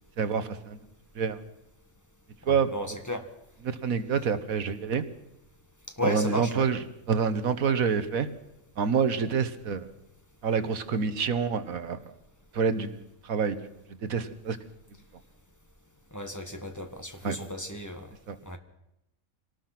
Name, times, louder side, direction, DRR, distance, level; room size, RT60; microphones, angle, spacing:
voice 1, 0.2-0.8 1.1-1.4 2.4-3.0 3.6-5.0 6.0-6.8 7.1-8.3 8.8-9.9 10.4-12.0 12.5-13.0 13.2-13.6 14.0-14.6 17.2-17.3 18.3-18.4, right 6 dB, 80° right, 11 dB, 1.7 m, -27 dB
voice 2, 2.5-3.2 6.0-6.7 16.1-18.1 18.4-18.6, equal, 15° left, 6 dB, 1.7 m, -34 dB
24.5 x 19.0 x 6.0 m, 0.85 s
omnidirectional pair, 1.4 m